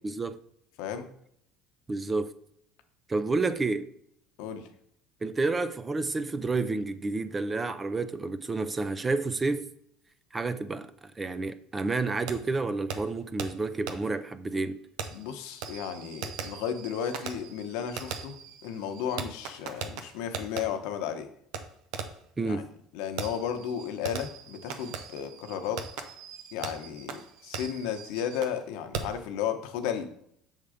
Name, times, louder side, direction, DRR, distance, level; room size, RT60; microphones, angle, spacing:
voice 1, 0.0-0.4 1.9-2.3 3.1-3.9 5.2-9.7 10.3-14.8 22.4-22.7, right 3 dB, 15° right, 0.3 m, -30 dB
voice 2, 0.8-1.1 4.4-4.7 15.1-21.3 22.4-22.6 22.9-25.8 26.5-30.1, left 8 dB, 75° left, 0.8 m, -34 dB
Fireworks, 12.3-12.4 12.9-13.0 13.4-13.5 13.9-14.0 15.0-20.6 21.5-21.6 21.9-22.2 23.2-28.6 28.9-29.2, right 6 dB, 75° right, 0.7 m, -39 dB
6.6 x 3.7 x 4.9 m
cardioid pair, 140°, 0 cm